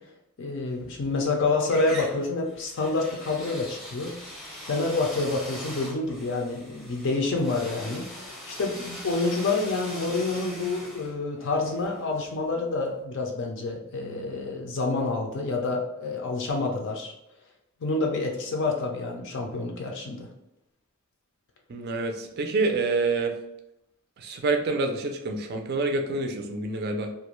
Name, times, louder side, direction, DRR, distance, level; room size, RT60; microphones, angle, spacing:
voice 1, 0.4-4.1 4.7-8.1 8.5-17.1 17.8-20.3, left 3 dB, 55° left, 2 dB, 0.4 m, -28 dB
sound 1, 0.7-1.3 1.6-12.5, equal, ahead, 0.6 m, -41 dB
voice 2, 21.7-23.3 24.2-27.1, right 3 dB, 45° right, 4 dB, 0.4 m, -27 dB
2.4 x 2.2 x 3.0 m, 0.84 s
head